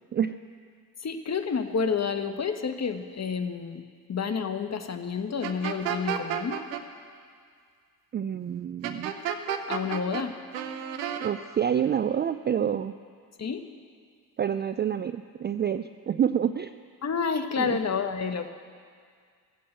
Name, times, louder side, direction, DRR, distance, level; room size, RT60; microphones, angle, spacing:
voice 1, 1.0-3.8 4.1-6.6 9.7-10.3 13.4-13.6 17.0-18.5, left 5 dB, 30° left, 7 dB, 1.2 m, -29 dB
sound 1, 5.4-6.8 8.8-10.2 10.5-11.3, right 9 dB, 85° right, 0.9 m, -31 dB
voice 2, 8.1-9.1 11.2-12.9 14.4-16.8 17.6-17.8, right 9 dB, 25° right, 11 dB, 0.4 m, -28 dB
16.0 x 8.4 x 7.9 m, 2.1 s
hypercardioid pair, 50°, 49 cm